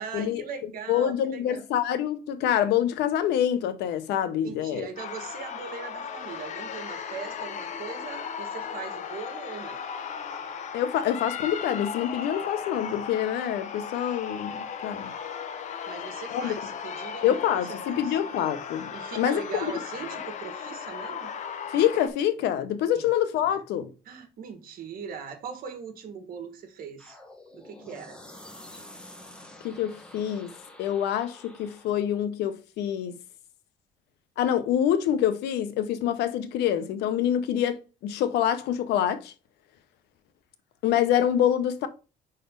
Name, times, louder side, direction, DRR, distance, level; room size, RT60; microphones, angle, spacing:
voice 1, 0.0-1.6 4.2-9.8 15.9-18.2 18.9-21.3 22.9-23.1 23.5-23.6 24.0-27.2 27.5-28.2, right 6 dB, 60° right, 1.5 m, -40 dB
voice 2, 0.9-4.9 10.7-15.1 16.3-16.5 17.2-18.9 19.2-19.7 21.7-23.9 29.6-30.5 30.8-33.1 34.4-39.3 40.8-41.9, left 10 dB, 90° left, 0.8 m, -26 dB
sound 1, 5.0-22.1, left 7 dB, 45° left, 0.7 m, -36 dB
sound 2, 27.0-32.0, left 1 dB, 5° left, 1.2 m, -48 dB
5.2 x 4.1 x 5.2 m
cardioid pair, 140°, 17 cm